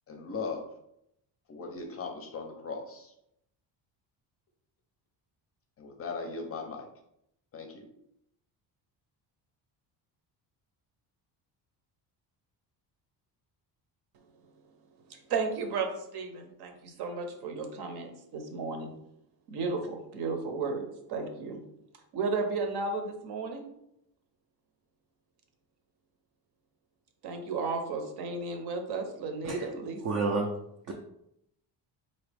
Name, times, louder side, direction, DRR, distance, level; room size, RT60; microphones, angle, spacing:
voice 1, 0.1-0.7 1.5-3.1 5.8-6.9 7.5-7.9, left 4 dB, 35° left, 3 dB, 0.5 m, -38 dB
voice 2, 15.1-18.9 19.5-21.6 22.1-23.6 27.2-30.2, right 4 dB, 60° right, 5 dB, 0.8 m, -34 dB
voice 3, 30.0-30.5 30.9-31.0, right 3 dB, 40° right, 1 dB, 0.4 m, -29 dB
4.1 x 2.8 x 3.3 m, 0.77 s
cardioid pair, 165°, 44 cm